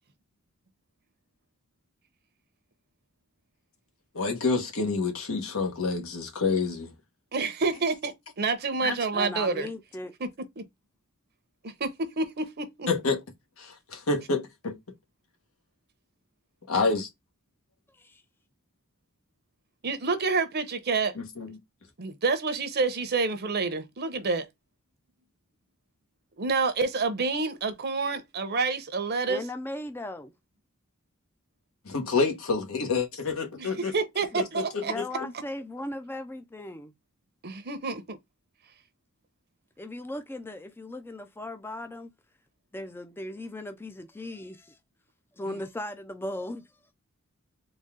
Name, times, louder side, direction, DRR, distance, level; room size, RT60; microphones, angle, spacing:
voice 1, 4.1-6.9 8.8-9.0 12.9-13.2 13.6-14.8 16.7-17.1 21.1-21.6 31.8-33.9 34.3-35.3, left 4 dB, 75° left, 1.1 m, -28 dB
voice 2, 7.3-9.7 10.2-10.3 10.6-10.7 11.6-12.9 19.8-21.1 22.0-24.5 26.4-29.4 33.6-34.9 37.4-38.2, right 4 dB, 50° right, 0.8 m, -28 dB
voice 3, 9.1-10.1 17.9-18.2 29.3-30.3 33.8-33.9 34.3-34.4 34.8-36.9 39.8-42.1 42.7-44.8 45.4-46.6, left 1 dB, 10° left, 0.4 m, -37 dB
3.9 x 2.3 x 3.6 m
head